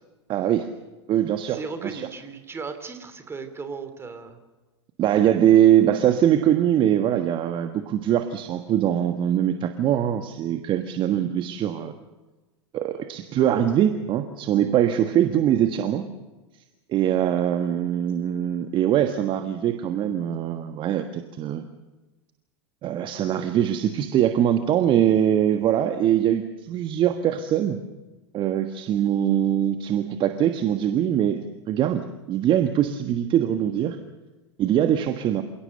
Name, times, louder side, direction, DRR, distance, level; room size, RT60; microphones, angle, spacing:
voice 1, 0.3-0.7 1.1-2.0 5.0-11.9 12.7-16.0 16.9-21.6 22.8-27.8 28.3-34.0 34.6-35.4, right 10 dB, 35° right, 8 dB, 1.5 m, -22 dB
voice 2, 1.5-4.4, right 5 dB, 15° right, 9 dB, 3.1 m, -36 dB
28.0 x 17.5 x 6.7 m, 1.2 s
figure-of-eight pair, 95°, 15 cm